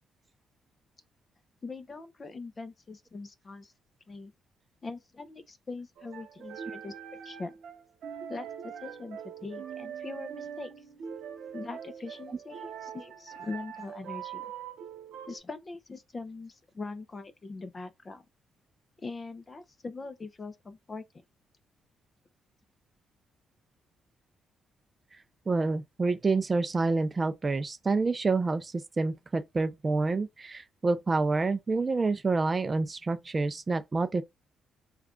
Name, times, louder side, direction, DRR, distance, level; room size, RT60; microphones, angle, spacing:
voice 1, 1.6-3.7 4.1-4.3 4.8-6.9 7.2-7.5 8.3-10.7 11.5-14.5 15.3-18.2 19.0-21.0, left 3 dB, 30° left, 0.5 m, -42 dB
sound 1, 6.0-15.4, right 8 dB, 75° right, 0.9 m, -42 dB
voice 2, 25.5-34.2, right 3 dB, 30° right, 0.4 m, -28 dB
3.2 x 2.4 x 3.6 m
cardioid pair, 90°, 0 cm